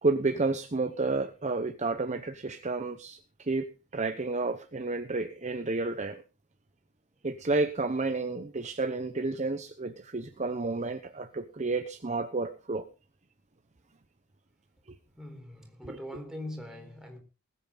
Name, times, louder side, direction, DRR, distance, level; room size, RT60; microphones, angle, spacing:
voice 1, 0.0-6.2 7.2-12.9, right 3 dB, 35° right, 0.9 m, -31 dB
voice 2, 15.2-17.2, left 1 dB, 5° right, 4.1 m, -42 dB
20.5 x 8.8 x 3.9 m
head